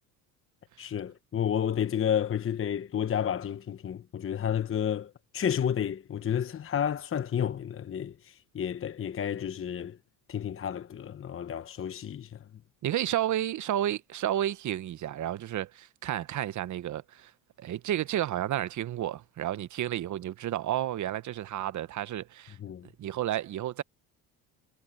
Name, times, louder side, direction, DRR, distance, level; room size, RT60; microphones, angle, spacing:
voice 1, 0.8-10.0 10.3-12.4 22.6-22.9, left 9 dB, 35° left, 1.1 m, -31 dB
voice 2, 12.8-17.3 17.6-22.6 23.0-23.8, right 12 dB, 50° right, 1.0 m, -31 dB
supercardioid pair, 85°, 38 cm